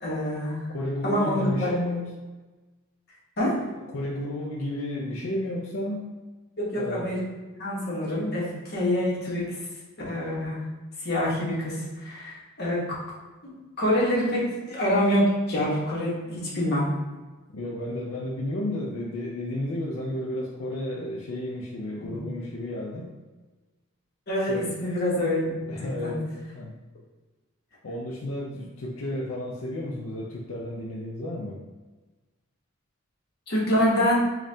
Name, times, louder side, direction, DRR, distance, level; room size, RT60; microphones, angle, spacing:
voice 1, 0.0-0.6 1.0-1.8 3.4-3.6 6.6-7.2 7.6-9.6 10.0-10.6 11.0-13.0 13.4-16.9 22.0-22.2 24.3-25.5 25.8-26.1 33.5-34.2, equal, 50° left, -4 dB, 1.0 m, -26 dB
voice 2, 0.7-2.1 3.9-6.1 6.8-7.1 17.5-23.1 24.4-24.7 25.7-26.7 27.8-31.6, left 1 dB, 75° left, -3 dB, 0.5 m, -32 dB
5.3 x 2.4 x 2.7 m, 1.2 s
head